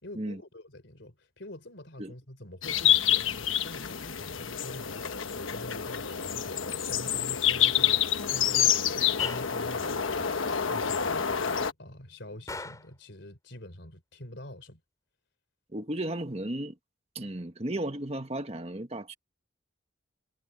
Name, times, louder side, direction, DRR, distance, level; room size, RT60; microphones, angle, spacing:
voice 1, 0.0-5.1 5.3-14.8, left 1 dB, 65° left, 3.9 m, -45 dB
sound 1, 2.6-11.7, left 9 dB, 85° left, 1.2 m, -27 dB
Gunshot gunfire, 9.2-9.6 12.5-12.9, left 2 dB, 15° left, 6.1 m, -39 dB
voice 2, 15.7-16.7 17.1-19.1, right 1 dB, 30° right, 1.5 m, -34 dB
head